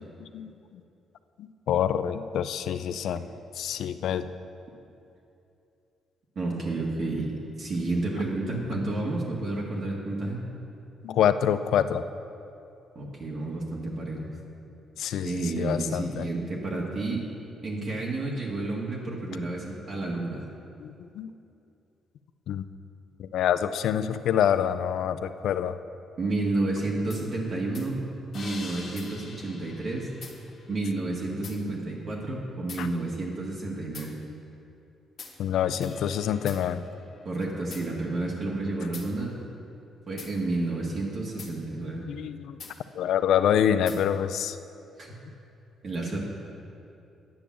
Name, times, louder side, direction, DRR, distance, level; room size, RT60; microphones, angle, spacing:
voice 1, 0.2-0.8 1.4-3.3 3.6-4.3 8.5-8.6 11.0-12.0 14.1-14.3 15.0-16.3 20.8-21.3 22.5-22.6 23.2-25.8 32.8-32.9 35.4-36.8 42.1-42.6 43.0-44.6, left 9 dB, 75° left, 12 dB, 0.4 m, -26 dB
voice 2, 6.4-10.4 13.0-14.3 15.2-17.2 17.6-20.5 26.2-28.0 28.3-30.1 30.7-34.1 37.3-39.3 40.1-42.1 45.0-45.1 45.8-46.2, right 2 dB, 50° right, -3 dB, 1.7 m, -30 dB
sound 1, 27.1-27.2 27.7-27.9 28.3-30.9 31.4-31.6 32.7-32.9 33.9-34.1 35.2-35.4 35.8-37.9 38.9-39.1 40.2-40.4 41.4-41.5 42.6-42.8 43.9-44.0, left 4 dB, 55° left, 1.5 m, -44 dB
10.0 x 7.0 x 7.3 m, 2.7 s
cardioid pair, 90°, 0 cm